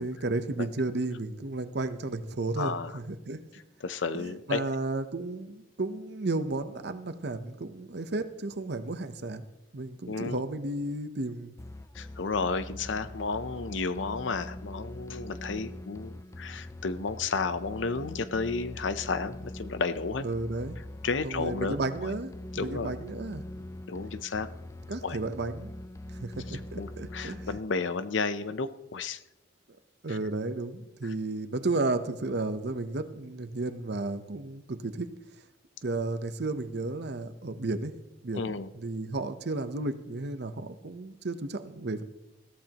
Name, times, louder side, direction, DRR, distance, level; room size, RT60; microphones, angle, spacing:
voice 1, 0.0-3.4 4.1-9.4 9.7-11.6 20.2-20.8 21.2-23.4 24.9-25.8 26.1-27.5 30.0-35.1 35.8-37.9 38.2-42.0, right 2 dB, 60° right, 10 dB, 0.9 m, -33 dB
voice 2, 2.6-3.0 3.8-4.6 10.1-10.4 11.9-20.2 21.0-21.8 22.0-22.1 22.5-23.0 23.9-24.5 25.0-25.2 26.5-29.2 30.1-30.2 31.0-31.1 38.3-38.7, left 4 dB, 80° left, 12 dB, 0.7 m, -32 dB
sound 1, 11.6-27.6, left 1 dB, 15° left, 0.4 m, -43 dB
21.5 x 14.5 x 3.0 m, 0.96 s
head